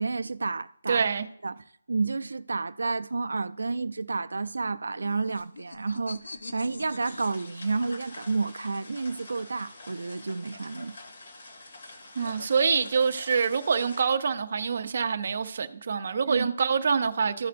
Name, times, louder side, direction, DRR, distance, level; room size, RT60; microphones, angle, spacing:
voice 1, 0.0-1.1 1.4-1.6 1.9-11.0 16.3-16.5, right 3 dB, 75° right, 0.3 m, -30 dB
voice 2, 0.9-1.3 12.2-17.5, right 6 dB, 35° right, 0.6 m, -26 dB
sound 1, 4.6-8.7 9.9-14.1, left 3 dB, 70° left, 1.2 m, -45 dB
sound 2, 7.0-14.0, left 2 dB, 40° left, 2.1 m, -47 dB
15.0 x 5.5 x 2.6 m
hypercardioid pair, 180°, 0 cm